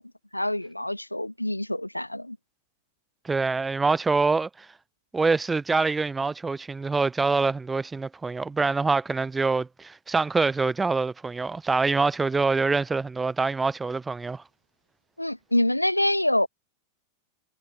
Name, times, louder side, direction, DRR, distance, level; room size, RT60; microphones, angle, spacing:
voice 1, 0.3-2.4 15.2-16.5, left 1 dB, 85° left, 0.6 m, -26 dB
voice 2, 3.2-4.7 5.1-14.4, right 4 dB, 10° right, 0.6 m, -25 dB
figure-of-eight pair, 90°, 0 cm